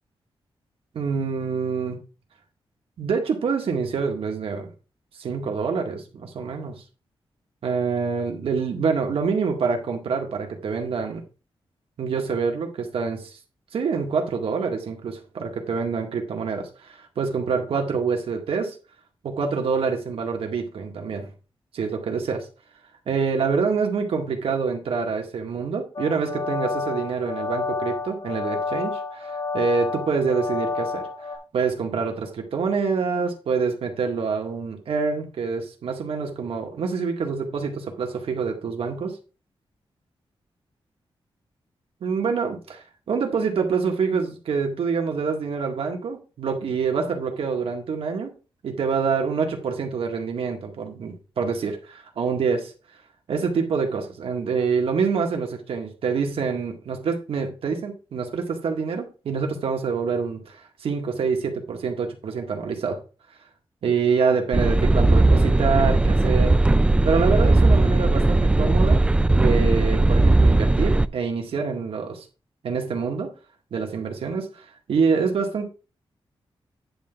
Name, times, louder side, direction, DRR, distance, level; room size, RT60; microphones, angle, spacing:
voice 1, 0.9-2.0 3.0-4.7 5.2-6.8 7.6-11.2 12.0-13.4 13.7-18.8 19.2-21.3 21.7-22.5 23.1-31.0 31.5-39.2 42.0-48.3 48.6-51.8 52.2-52.6 53.3-60.5 60.8-63.0 63.8-66.6 67.0-72.2 72.6-73.3 73.7-75.7, right 5 dB, 80° right, 3 dB, 1.9 m, -26 dB
sound 1, 25.9-31.4, left 4 dB, 50° left, 3.1 m, -29 dB
sound 2, 64.5-71.1, right 2 dB, 10° right, 0.3 m, -18 dB
10.0 x 3.8 x 5.7 m, 0.34 s
wide cardioid pair, 175°, 9 cm